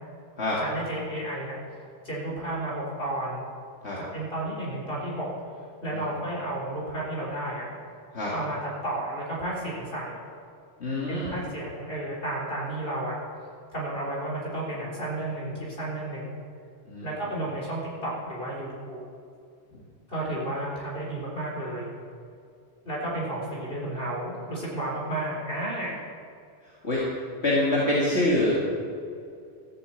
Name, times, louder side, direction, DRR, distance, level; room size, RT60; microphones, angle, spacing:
voice 1, 0.6-3.4 4.1-5.3 5.8-7.7 8.3-10.1 11.1-13.2 13.7-16.3 17.0-19.0 20.1-21.9 22.8-26.0, right 1 dB, 55° left, -5 dB, 4.2 m, -32 dB
voice 2, 10.8-11.4 16.9-17.1 19.7-19.8 26.6-27.0 27.4-28.5, left 1 dB, 75° left, -6 dB, 2.4 m, -25 dB
13.5 x 8.1 x 8.1 m, 2.4 s
omnidirectional pair, 1.2 m